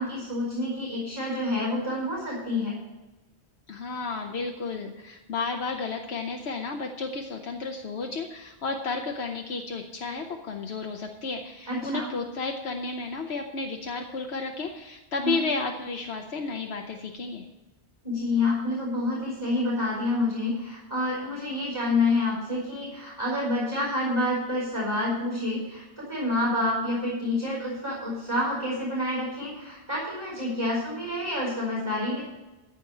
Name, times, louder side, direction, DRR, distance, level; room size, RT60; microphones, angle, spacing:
voice 1, 0.0-2.8 11.7-12.1 15.2-15.4 18.0-32.2, left 2 dB, 25° right, -5 dB, 5.1 m, -28 dB
voice 2, 3.7-17.5, left 4 dB, 75° left, 3 dB, 1.2 m, -32 dB
14.5 x 5.3 x 7.7 m, 1.1 s
omnidirectional pair, 1.1 m